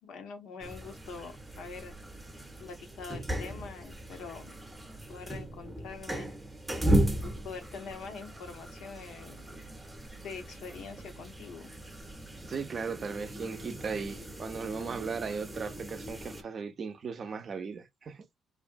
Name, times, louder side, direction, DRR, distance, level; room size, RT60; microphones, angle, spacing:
voice 1, 0.0-1.9 2.6-4.5 5.1-6.3 7.2-9.5 10.2-11.7, left 5 dB, 80° left, 0.7 m, -44 dB
sound 1, 0.6-16.4, right 1 dB, 10° right, 0.7 m, -36 dB
voice 2, 12.4-18.2, right 5 dB, 50° right, 0.5 m, -37 dB
2.5 x 2.1 x 2.5 m
cardioid pair, 90°, 0 cm